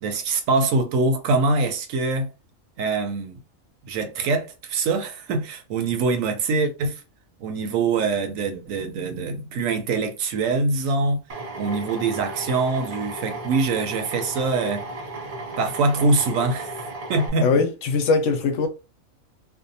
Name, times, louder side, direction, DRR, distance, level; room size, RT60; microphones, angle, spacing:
voice 1, 0.0-2.3 2.8-3.4 3.9-7.0 7.4-11.2 11.6-14.9 15.6-17.6, right 3 dB, 75° right, 1.0 m, -24 dB
Drill, 11.3-17.3, right 2 dB, 50° right, 0.4 m, -34 dB
voice 2, 17.4-18.7, left 4 dB, 70° left, 0.9 m, -21 dB
2.5 x 2.2 x 2.6 m
omnidirectional pair, 1.4 m